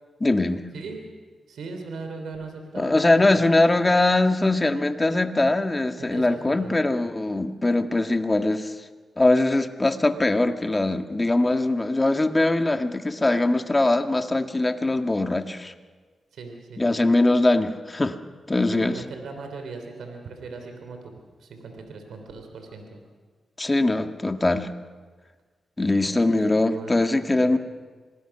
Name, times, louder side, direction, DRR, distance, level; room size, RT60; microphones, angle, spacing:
voice 1, 0.2-0.6 2.7-8.7 9.2-15.7 16.8-18.2 18.5-19.0 23.6-24.7 25.8-27.6, left 2 dB, 25° left, 7 dB, 1.7 m, -22 dB
voice 2, 1.5-3.4 6.0-6.8 16.3-17.1 18.7-23.0 26.0-27.0 27.4-27.6, right 4 dB, 85° right, 4 dB, 3.3 m, -39 dB
26.0 x 19.5 x 6.0 m, 1.4 s
cardioid pair, 55°, 0 cm